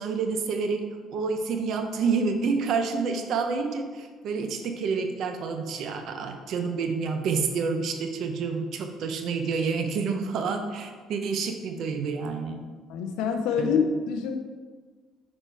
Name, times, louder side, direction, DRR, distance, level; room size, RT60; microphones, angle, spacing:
voice 1, 0.0-12.7 13.5-13.8, right 5 dB, 65° right, 6 dB, 0.6 m, -28 dB
voice 2, 12.9-14.4, left 6 dB, 85° left, 5 dB, 0.4 m, -26 dB
5.6 x 4.4 x 4.5 m, 1.5 s
cardioid pair, 100°, 0 cm